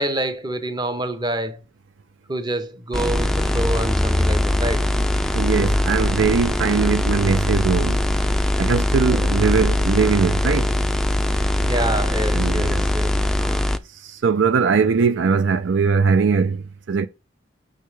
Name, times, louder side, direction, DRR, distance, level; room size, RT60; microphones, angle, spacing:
voice 1, 0.0-1.6 2.3-4.9 9.1-9.3 11.6-13.6, right 1 dB, 25° right, 0.9 m, -27 dB
sound 1, 2.9-13.8, left 1 dB, 5° left, 0.4 m, -21 dB
voice 2, 5.3-8.0 8.6-10.7 12.3-12.9 14.0-17.1, right 5 dB, 75° right, 0.5 m, -20 dB
6.4 x 6.4 x 3.3 m
head